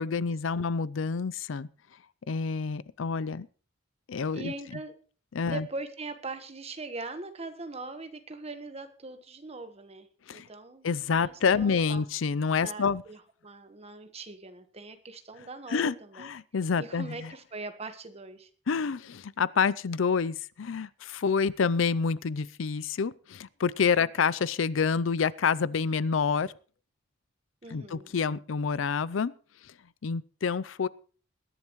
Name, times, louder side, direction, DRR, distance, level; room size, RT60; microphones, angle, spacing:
voice 1, 0.0-1.7 2.3-3.5 4.1-4.5 5.3-5.7 10.3-10.5 10.8-13.0 15.7-17.3 18.7-26.5 27.7-29.3 30.0-30.9, left 5 dB, 90° left, 20 dB, 0.5 m, -28 dB
voice 2, 4.3-5.0 5.4-12.0 12.5-16.3 16.8-18.5 24.0-24.1 27.6-28.2, right 3 dB, 35° right, 9 dB, 1.3 m, -41 dB
21.0 x 11.0 x 3.1 m, 0.40 s
head